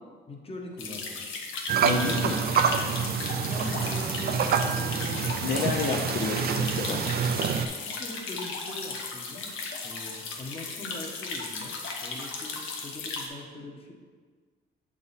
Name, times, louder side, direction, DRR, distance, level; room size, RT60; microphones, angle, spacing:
voice 1, 0.3-1.2 3.4-5.3 7.4-9.5 9.8-13.9, left 2 dB, 30° left, 1 dB, 1.1 m, -42 dB
sound 1, 0.8-13.3, left 4 dB, 85° left, 0.9 m, -36 dB
sound 2, 1.7-7.7, right 7 dB, 50° right, 0.4 m, -27 dB
voice 2, 1.8-2.4 5.4-7.0, left 4 dB, 55° left, 0 dB, 0.6 m, -29 dB
7.0 x 3.7 x 4.0 m, 1.5 s
cardioid pair, 90°, 20 cm